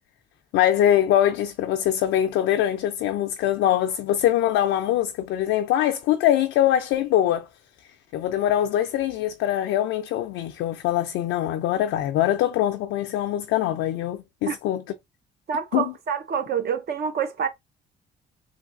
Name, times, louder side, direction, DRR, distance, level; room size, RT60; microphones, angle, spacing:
voice 1, 0.5-7.5 8.1-14.8 15.7-15.8, left 11 dB, 90° left, 0.4 m, -23 dB
voice 2, 15.5-17.5, right 7 dB, 55° right, 0.7 m, -27 dB
3.2 x 2.7 x 2.6 m
cardioid pair, 90°, 20 cm